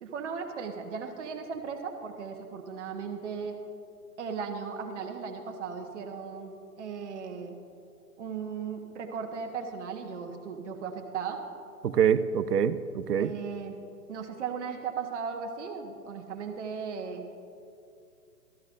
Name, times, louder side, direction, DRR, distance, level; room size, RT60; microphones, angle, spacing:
voice 1, 0.0-3.6 4.2-7.6 8.2-11.4 13.2-13.8 14.1-17.3, right 6 dB, 50° right, 3 dB, 1.1 m, -37 dB
voice 2, 11.8-13.3, right 8 dB, 85° right, 14 dB, 0.6 m, -25 dB
13.5 x 12.5 x 2.5 m, 2.5 s
figure-of-eight pair, 130°, 46 cm